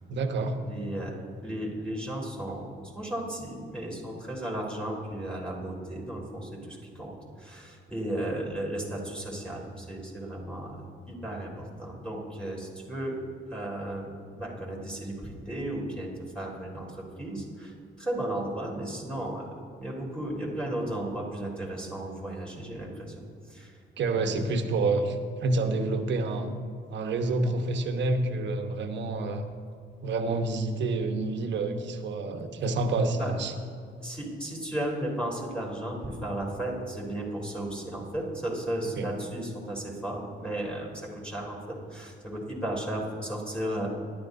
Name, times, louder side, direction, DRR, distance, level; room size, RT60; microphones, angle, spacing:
voice 1, 0.1-0.6 24.0-26.5 26.9-29.5 30.0-33.5 39.0-39.1, right 3 dB, 65° right, 6 dB, 1.2 m, -28 dB
voice 2, 0.6-1.1 1.4-13.2 13.5-16.1 16.3-19.5 19.8-23.8 24.2-24.3 33.1-33.3 34.0-43.9, right 1 dB, 5° left, -4 dB, 3.3 m, -35 dB
19.5 x 11.5 x 2.7 m, 2.2 s
cardioid pair, 90°, 20 cm